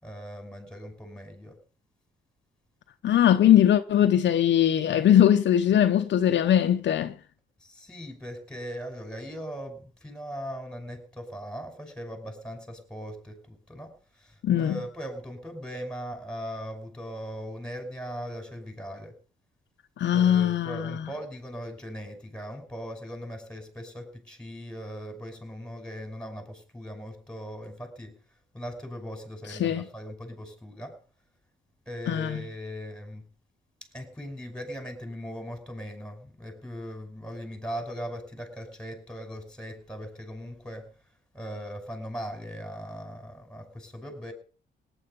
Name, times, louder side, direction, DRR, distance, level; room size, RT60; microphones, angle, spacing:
voice 1, 0.0-1.6 7.6-19.1 20.1-28.2 28.5-31.0 31.9-33.2 33.9-40.9 41.3-44.3, equal, 5° left, 5.7 m, -39 dB
voice 2, 3.0-7.1 14.4-14.8 20.0-20.9 29.6-29.8 32.1-32.4, left 10 dB, 65° left, 1.0 m, -21 dB
18.0 x 10.0 x 5.5 m
cardioid pair, 90°, 20 cm